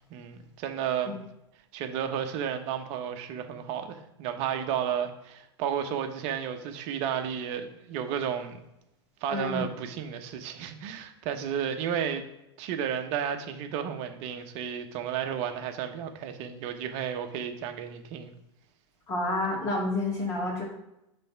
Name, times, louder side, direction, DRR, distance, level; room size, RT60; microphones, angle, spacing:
voice 1, 0.1-1.2 1.7-8.6 9.2-12.2 12.6-18.3, right 8 dB, 45° right, 6 dB, 0.9 m, -32 dB
voice 2, 9.3-9.6 19.1-20.6, left 2 dB, 25° left, -3 dB, 1.8 m, -29 dB
5.2 x 3.4 x 5.6 m, 0.87 s
hypercardioid pair, 120°, 15 cm